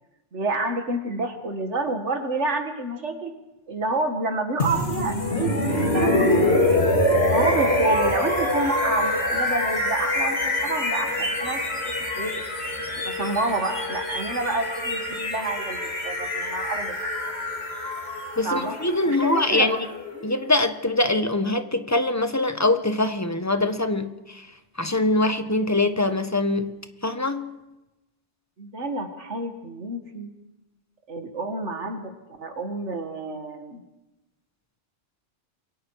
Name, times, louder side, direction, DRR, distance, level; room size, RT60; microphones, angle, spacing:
voice 1, 0.3-3.3 3.7-11.6 12.2-12.4 13.0-17.0 18.4-18.8 19.1-19.8 20.1-20.3 28.6-30.3 31.1-32.1 32.4-33.8, right 2 dB, 80° right, 6 dB, 2.1 m, -29 dB
sound 1, 4.6-20.5, left 1 dB, 60° left, 3.1 m, -25 dB
voice 2, 18.4-19.8 20.2-24.1 24.8-26.7 27.0-27.6, left 2 dB, 15° left, 8 dB, 1.2 m, -23 dB
28.0 x 22.5 x 4.8 m, 0.99 s
omnidirectional pair, 1.2 m